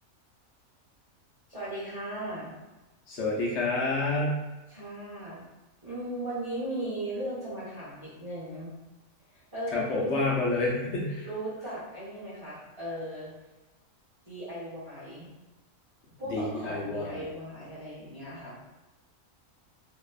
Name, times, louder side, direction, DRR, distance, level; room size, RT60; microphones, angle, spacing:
voice 1, 1.5-2.5 4.7-5.4 5.8-8.7 9.3-10.4 11.2-13.3 14.2-15.3 16.2-18.6, right 1 dB, 20° right, -10 dB, 0.7 m, -37 dB
voice 2, 3.1-4.3 9.7-11.3 16.3-17.2, left 2 dB, 65° left, -4 dB, 0.8 m, -28 dB
2.6 x 2.1 x 2.3 m, 1.1 s
omnidirectional pair, 1.4 m